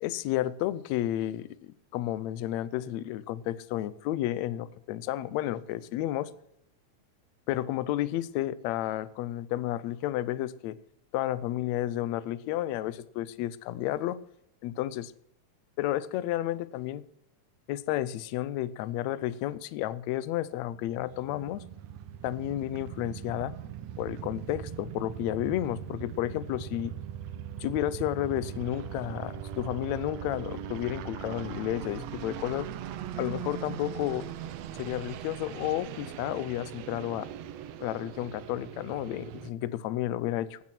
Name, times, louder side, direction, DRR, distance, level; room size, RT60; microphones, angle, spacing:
voice 1, 0.0-6.3 7.5-10.8 11.1-14.2 14.6-15.1 15.8-17.0 17.7-21.6 22.2-23.5 24.0-26.9 27.6-32.7 33.2-34.3 34.8-37.3 37.8-40.6, left 13 dB, 80° left, 18 dB, 1.7 m, -32 dB
sound 1, 20.7-39.5, right 10 dB, 75° right, 1.6 m, -40 dB
12.0 x 9.9 x 6.1 m, 0.74 s
omnidirectional pair, 3.8 m